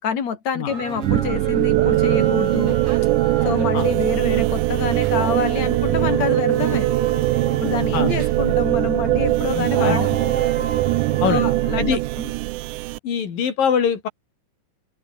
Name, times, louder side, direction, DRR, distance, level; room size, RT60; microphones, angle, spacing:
voice 1, 0.0-2.8 3.4-6.9 7.6-10.1 11.2-12.3, left 7 dB, 50° left, 3.5 m, -27 dB
sound 1, 0.7-11.8, right 4 dB, 40° right, 5.2 m, -32 dB
sound 2, 1.0-13.0, right 18 dB, 80° right, 1.8 m, -21 dB
voice 2, 9.5-10.0 11.2-11.5 11.8-12.0 13.0-14.1, left 7 dB, 70° left, 4.8 m, -23 dB
open air
omnidirectional pair, 4.2 m